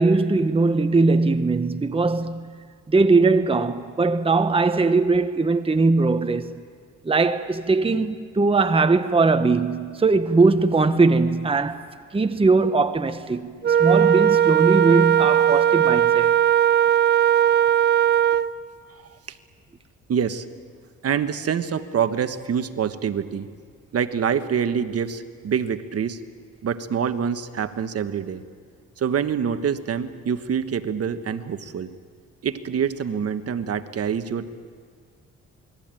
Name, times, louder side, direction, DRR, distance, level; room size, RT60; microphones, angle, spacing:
voice 1, 0.0-2.5 2.9-6.6 7.0-11.9 12.1-16.3, right 3 dB, 20° right, 1.0 m, -20 dB
Wind instrument woodwind instrument, 13.6-18.5, right 9 dB, 35° right, 0.7 m, -18 dB
voice 2, 20.1-20.5 21.0-23.5 23.9-26.2 26.6-28.4 29.0-31.9 32.4-34.5, right 7 dB, 50° right, 1.3 m, -26 dB
28.0 x 21.0 x 9.1 m
cardioid pair, 90°, 30 cm